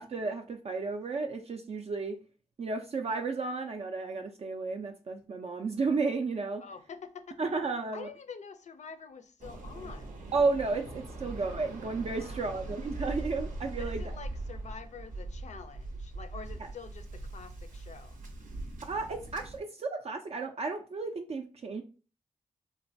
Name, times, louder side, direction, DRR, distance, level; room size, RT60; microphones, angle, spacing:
voice 1, 0.0-2.2 2.6-6.6 7.4-8.1 10.3-14.2 18.9-21.8, right 4 dB, 50° right, 0.4 m, -33 dB
voice 2, 6.6-7.4 7.9-10.2 12.1-12.7 13.8-18.2, left 5 dB, 60° left, 0.4 m, -47 dB
Waves surf, 9.4-19.6, right 2 dB, 80° right, 0.7 m, -41 dB
3.0 x 2.2 x 2.6 m
cardioid pair, 60°, 14 cm